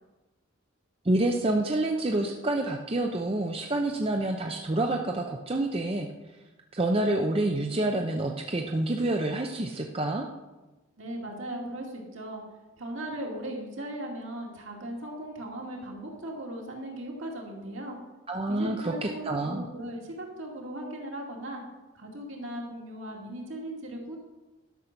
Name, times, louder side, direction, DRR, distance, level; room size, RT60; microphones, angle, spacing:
voice 1, 1.0-6.1 6.7-10.3 18.3-19.6, right 2 dB, 25° right, 2 dB, 0.6 m, -28 dB
voice 2, 11.0-12.4 12.8-18.0 18.5-21.6 21.9-24.2, right 1 dB, 65° right, -1 dB, 2.3 m, -38 dB
12.0 x 6.5 x 5.9 m, 1.1 s
head